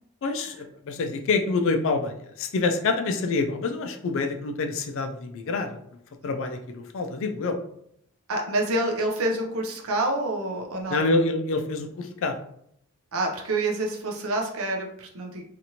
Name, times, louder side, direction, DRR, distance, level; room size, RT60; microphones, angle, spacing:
voice 1, 0.2-5.8 6.2-7.6 10.9-12.4, left 3 dB, 60° left, 6 dB, 0.4 m, -27 dB
voice 2, 8.3-11.0 13.1-15.4, right 2 dB, 65° right, 2 dB, 0.6 m, -27 dB
2.8 x 2.5 x 2.8 m, 0.70 s
head